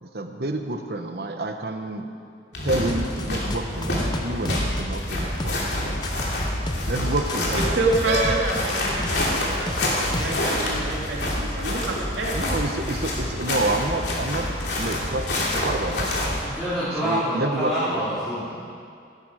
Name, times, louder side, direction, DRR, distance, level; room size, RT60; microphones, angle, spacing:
voice 1, 0.0-2.0 2.6-6.0 6.9-7.8 12.3-14.5 14.8-16.1 17.0-18.0, right 2 dB, 55° right, 6 dB, 1.0 m, -29 dB
sound 1, 2.5-16.5, left 1 dB, 70° left, 2.9 m, -27 dB
sound 2, 2.9-10.5, left 1 dB, 25° left, 0.7 m, -34 dB
voice 2, 7.5-12.6, right 2 dB, 85° right, -2 dB, 2.3 m, -27 dB
voice 3, 16.4-18.6, equal, ahead, -15 dB, 3.8 m, -27 dB
16.0 x 12.5 x 4.9 m, 2.3 s
head